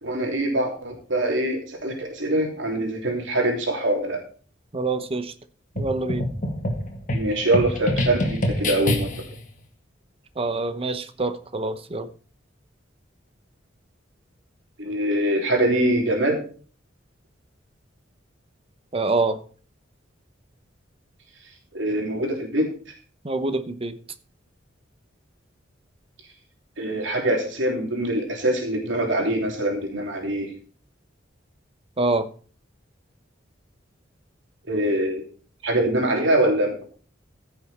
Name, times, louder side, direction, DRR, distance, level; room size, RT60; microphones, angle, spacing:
voice 1, 0.0-4.2 7.1-9.1 14.8-16.4 21.7-22.7 26.8-30.5 34.7-35.3 35.6-36.8, right 1 dB, 75° right, 1 dB, 3.1 m, -23 dB
voice 2, 4.7-5.3 5.8-6.2 10.4-12.1 18.9-19.4 23.2-24.0 32.0-32.3, right 3 dB, 30° right, 11 dB, 0.9 m, -25 dB
sound 1, 5.8-9.4, left 1 dB, 45° left, 2.0 m, -26 dB
15.5 x 6.7 x 4.3 m, 0.41 s
head